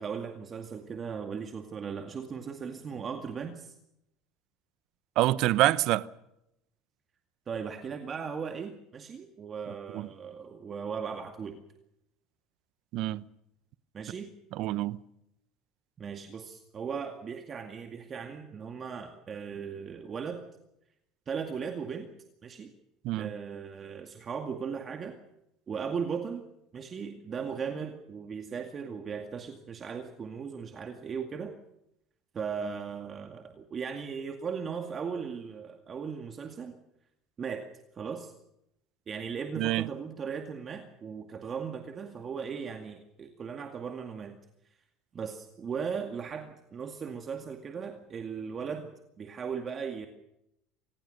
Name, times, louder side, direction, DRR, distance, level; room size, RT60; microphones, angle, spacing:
voice 1, 0.0-3.8 7.5-11.6 13.9-14.3 16.0-20.4 21.3-22.1 22.4-22.7 23.1-25.2 25.7-26.4 26.7-31.5 32.3-36.8 37.4-37.7 37.9-38.3 39.1-44.4 45.1-48.9 49.2-50.1, right 6 dB, 35° right, 2.2 m, -37 dB
voice 2, 5.2-6.1 9.9-10.1 12.9-13.2 14.5-15.0 23.0-23.3 39.6-39.8, right 16 dB, 65° right, 0.9 m, -26 dB
25.5 x 19.5 x 6.6 m
supercardioid pair, 105°, 0 cm